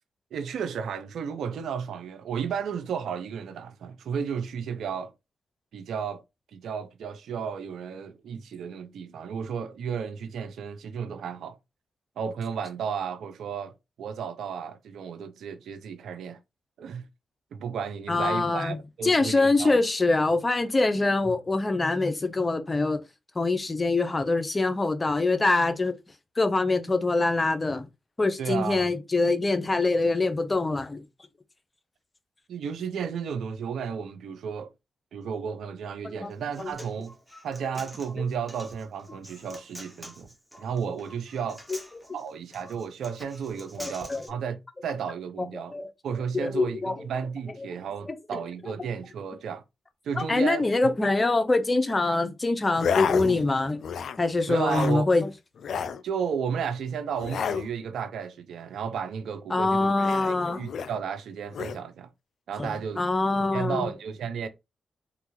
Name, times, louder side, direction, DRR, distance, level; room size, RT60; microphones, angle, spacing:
voice 1, 0.3-5.1 5.7-6.2 6.5-11.6 12.2-13.7 14.0-16.4 16.8-17.1 17.5-19.8 28.4-28.9 32.5-34.7 35.1-37.2 37.4-40.3 40.6-41.6 42.1-45.7 46.0-49.6 50.0-51.0 54.5-55.1 56.0-60.1 60.5-62.1 62.5-63.0 63.3-64.5, right 7 dB, 80° right, 0.4 m, -33 dB
voice 2, 18.1-18.8 19.0-23.0 23.3-25.9 26.4-27.8 28.2-31.0 36.2-36.3 36.6-36.7 41.7-41.8 43.8-44.2 45.7-45.9 46.3-46.9 48.1-48.4 50.2-53.8 54.2-55.3 59.5-60.6 62.6-62.7 63.0-63.9, left 3 dB, 35° left, 0.8 m, -24 dB
Human voice, 36.3-44.3, equal, 5° right, 1.6 m, -46 dB
sound 1, 52.7-53.5 53.8-54.2 54.5-55.0 55.6-56.0 57.2-57.7 60.0-61.0 61.5-61.8, left 7 dB, 75° left, 0.3 m, -30 dB
3.4 x 2.4 x 3.0 m
supercardioid pair, 40°, 0 cm